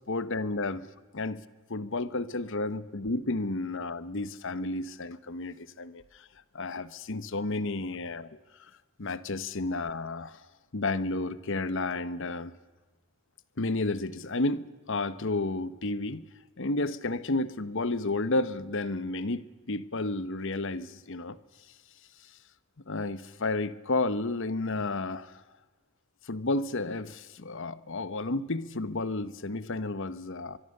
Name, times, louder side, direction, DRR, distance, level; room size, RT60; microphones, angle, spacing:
voice 1, 0.1-0.9 1.1-1.4 1.7-6.3 6.5-8.4 9.0-10.4 10.7-12.5 13.6-16.2 16.6-19.4 19.7-21.4 22.9-25.4 26.3-30.6, left 2 dB, 60° left, 15 dB, 1.0 m, -31 dB
24.0 x 22.5 x 6.6 m, 1.3 s
head